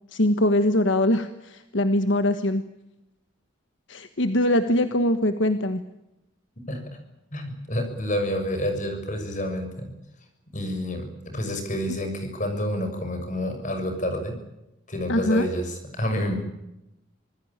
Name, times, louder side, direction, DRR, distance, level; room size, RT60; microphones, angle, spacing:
voice 1, 0.1-2.6 3.9-5.8 15.1-15.4, left 1 dB, 65° left, 9 dB, 1.4 m, -22 dB
voice 2, 6.7-7.0 7.3-9.9 10.5-14.3 14.9-16.4, equal, 40° left, 6 dB, 6.6 m, -29 dB
26.0 x 20.0 x 8.8 m, 0.92 s
head